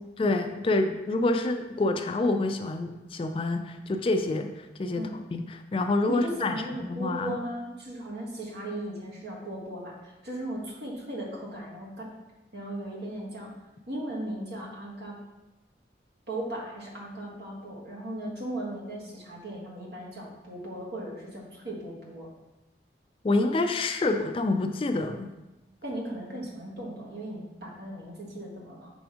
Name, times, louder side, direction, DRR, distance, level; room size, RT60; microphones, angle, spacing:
voice 1, 0.2-5.0 5.3-7.4 23.2-25.3, left 2 dB, 30° left, 6 dB, 0.3 m, -27 dB
voice 2, 6.1-12.1 12.5-13.5 13.9-15.2 16.3-22.3 25.8-28.9, right 1 dB, 65° right, -4 dB, 1.6 m, -37 dB
6.1 x 3.4 x 5.0 m, 1.0 s
head